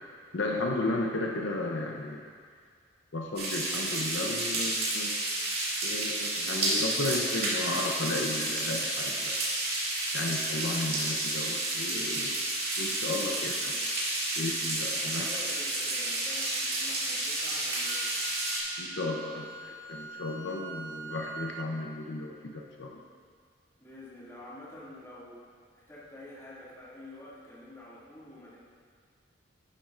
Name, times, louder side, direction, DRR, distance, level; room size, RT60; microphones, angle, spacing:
voice 1, 0.3-2.3 3.1-5.2 5.8-9.4 10.1-12.4 12.8-13.7 14.4-15.3 18.8-23.0, left 2 dB, 70° left, 0 dB, 0.7 m, -34 dB
sound 1, 3.4-18.6, right 2 dB, 55° right, 2.2 m, -31 dB
voice 2, 13.3-13.9 15.0-18.1 19.3-19.6 23.8-25.4 25.7-28.6, left 1 dB, 15° left, -9 dB, 2.2 m, -48 dB
Wind instrument woodwind instrument, 17.9-21.7, right 4 dB, 70° right, 0.5 m, -43 dB
12.0 x 10.0 x 2.5 m, 2.1 s
head